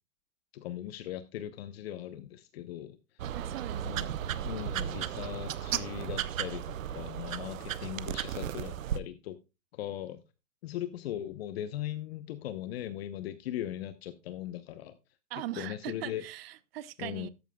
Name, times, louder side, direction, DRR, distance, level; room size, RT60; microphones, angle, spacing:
voice 1, 0.5-3.0 3.8-4.2 4.4-9.4 9.7-10.2 10.6-15.0 15.6-16.2 17.0-17.3, left 12 dB, 50° left, 1.0 m, -39 dB
sound 1, 3.2-9.0, right 10 dB, 80° right, 0.9 m, -35 dB
voice 2, 3.3-4.5 15.3-17.3, right 15 dB, 50° right, 0.8 m, -41 dB
13.0 x 9.0 x 2.3 m
hypercardioid pair, 140°, 39 cm